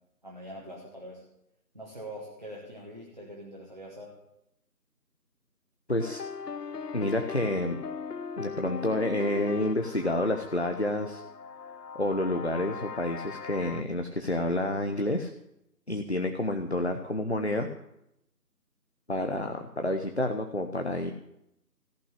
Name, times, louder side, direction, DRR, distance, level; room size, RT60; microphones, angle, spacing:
voice 1, 0.2-1.2 1.7-4.1, equal, 30° right, -3 dB, 1.7 m, -43 dB
voice 2, 5.9-6.2 6.9-7.8 8.4-11.2 11.9-15.3 15.9-17.7 19.1-21.1, left 1 dB, 45° left, 5 dB, 0.9 m, -29 dB
sound 1, 6.0-13.8, left 6 dB, 75° left, 0.7 m, -39 dB
14.5 x 6.0 x 10.0 m, 0.82 s
figure-of-eight pair, 175°, 49 cm